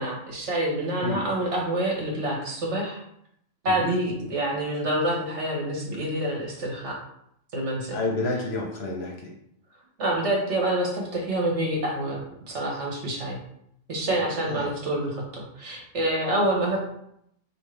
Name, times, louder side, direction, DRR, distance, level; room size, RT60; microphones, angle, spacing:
voice 1, 0.0-3.0 3.6-7.0 7.5-8.0 10.0-12.2 12.5-13.4 13.9-16.8, right 1 dB, 60° right, -2 dB, 1.4 m, -27 dB
voice 2, 7.9-9.3 14.5-14.7, left 2 dB, 55° left, 0 dB, 0.9 m, -29 dB
5.2 x 2.6 x 3.2 m, 0.74 s
omnidirectional pair, 1.3 m